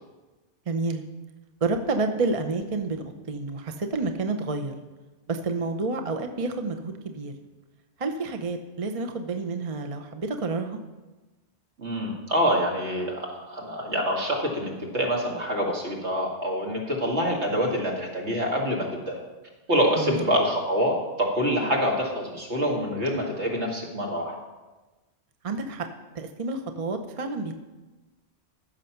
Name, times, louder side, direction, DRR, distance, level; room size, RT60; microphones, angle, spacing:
voice 1, 0.7-1.0 1.6-4.7 5.3-7.3 8.0-10.8 20.0-20.2 25.4-25.9 26.2-27.5, right 3 dB, 35° right, 5 dB, 0.8 m, -29 dB
voice 2, 11.8-19.2 19.7-24.4, equal, 70° right, -1 dB, 2.4 m, -26 dB
15.0 x 6.5 x 5.8 m, 1.2 s
omnidirectional pair, 1.2 m